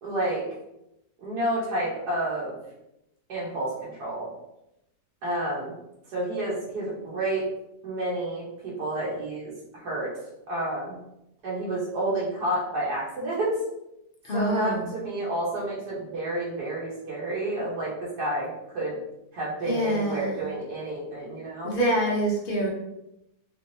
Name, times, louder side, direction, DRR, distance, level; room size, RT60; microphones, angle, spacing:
voice 1, 0.0-0.4 1.2-2.6 3.3-4.3 5.2-5.7 6.1-7.4 7.8-10.1 10.5-11.0 11.4-13.6 14.3-19.0 19.3-21.7, right 1 dB, 90° right, -6 dB, 1.5 m, -30 dB
voice 2, 14.2-14.9 19.6-20.5 21.6-22.7, right 1 dB, 45° left, -2 dB, 0.8 m, -26 dB
3.4 x 3.2 x 2.6 m, 0.86 s
omnidirectional pair, 1.6 m